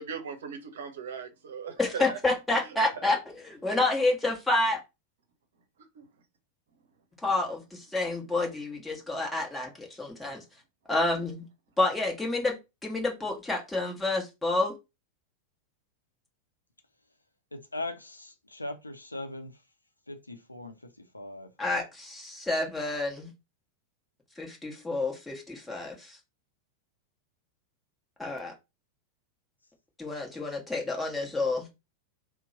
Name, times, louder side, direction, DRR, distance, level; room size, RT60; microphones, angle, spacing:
voice 1, 0.0-2.2 6.0-6.1, right 6 dB, 60° right, 0.7 m, -38 dB
voice 2, 1.8-4.8 7.2-10.4 10.9-11.4 11.8-12.6 12.8-14.7 21.6-23.3 24.4-26.2 28.2-28.5 30.0-31.7, left 2 dB, 5° left, 1.1 m, -29 dB
voice 3, 17.5-19.5 20.1-20.7 21.1-21.5, left 2 dB, 85° left, 0.5 m, -39 dB
2.9 x 2.1 x 3.9 m
figure-of-eight pair, 90°, 0 cm